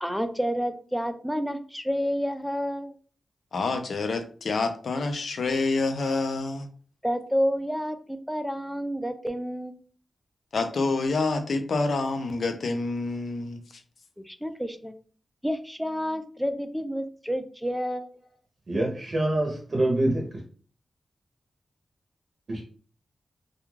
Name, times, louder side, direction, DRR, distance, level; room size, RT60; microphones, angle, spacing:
voice 1, 0.0-2.9 7.0-9.7 14.3-14.9 15.4-18.1, equal, ahead, 8 dB, 0.3 m, -29 dB
voice 2, 3.5-6.7 10.5-13.6, left 3 dB, 70° left, 7 dB, 0.4 m, -27 dB
voice 3, 18.7-20.3 22.5-22.6, right 1 dB, 45° right, -1 dB, 0.7 m, -25 dB
2.3 x 2.3 x 3.1 m, 0.42 s
wide cardioid pair, 100°, 0 cm